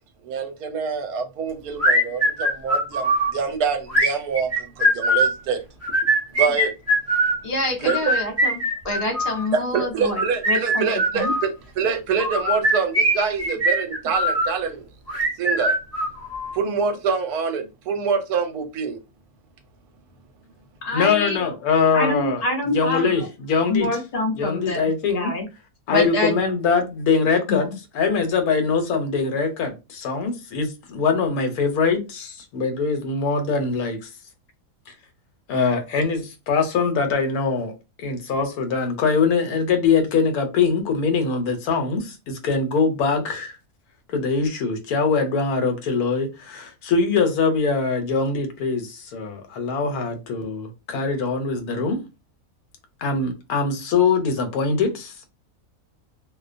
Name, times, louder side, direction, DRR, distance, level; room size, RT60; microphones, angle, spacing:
voice 1, 0.2-5.6 6.3-6.7 7.8-8.0 9.5-14.9 15.4-15.8 16.5-19.0, right 5 dB, 85° right, 1.1 m, -25 dB
sound 1, 1.8-3.3 3.9-5.3 5.8-7.4 7.9-9.5 10.0-11.5 12.2-14.5 15.1-16.6, right 1 dB, 20° right, 0.4 m, -21 dB
voice 2, 7.4-10.2 10.5-10.8 11.1-11.3 20.8-21.4 21.9-23.3 23.7-24.9 25.1-25.5 25.9-26.4 27.5-27.7, left 1 dB, 40° left, 0.6 m, -26 dB
voice 3, 20.9-22.4 22.7-23.9 24.4-25.3 25.9-27.7 27.9-34.1 35.5-37.7 38.0-43.6 44.1-52.0 53.0-55.1, left 5 dB, 80° left, 1.1 m, -22 dB
2.6 x 2.1 x 2.4 m
omnidirectional pair, 1.6 m